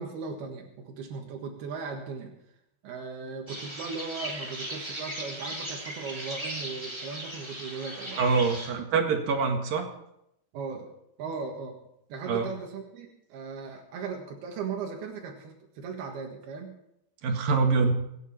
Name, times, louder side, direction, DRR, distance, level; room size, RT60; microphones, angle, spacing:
voice 1, 0.0-2.3 2.8-8.2 10.5-10.9 11.2-11.8 12.1-16.8, right 5 dB, 85° right, 1 dB, 3.6 m, -37 dB
sound 1, 3.5-8.7, right 1 dB, 10° right, 2.8 m, -37 dB
voice 2, 8.2-9.9 12.3-12.5 17.2-17.9, right 4 dB, 70° right, 3 dB, 3.5 m, -25 dB
25.0 x 9.6 x 4.3 m, 0.79 s
omnidirectional pair, 4.4 m